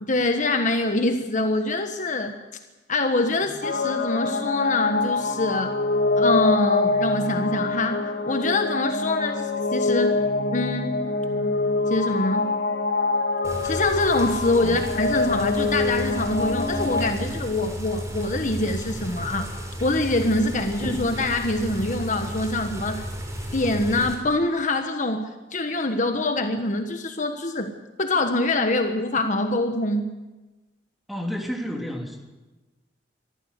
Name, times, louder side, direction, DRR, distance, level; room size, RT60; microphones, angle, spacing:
voice 1, 0.0-2.4 2.9-5.7 6.2-10.2 10.5-10.9 11.9-12.5 13.6-19.5 19.8-23.1 23.5-27.7 28.0-30.1, left 2 dB, 45° left, 6 dB, 1.4 m, -25 dB
sound 1, 3.6-17.1, left 3 dB, 80° left, 2.2 m, -25 dB
sound 2, 13.4-24.2, equal, 20° right, 3.9 m, -33 dB
voice 2, 31.1-32.2, equal, ahead, 1 dB, 3.0 m, -31 dB
24.0 x 14.5 x 8.3 m, 1.1 s
head